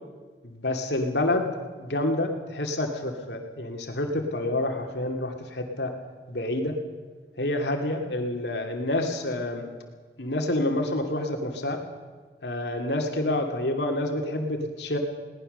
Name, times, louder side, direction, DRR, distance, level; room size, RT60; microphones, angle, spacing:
voice 1, 0.4-1.5 1.8-5.9 6.3-6.8 7.4-9.7 10.2-11.8 12.4-15.0, left 1 dB, 80° left, 3 dB, 2.6 m, -28 dB
21.0 x 18.5 x 6.7 m, 1.4 s
head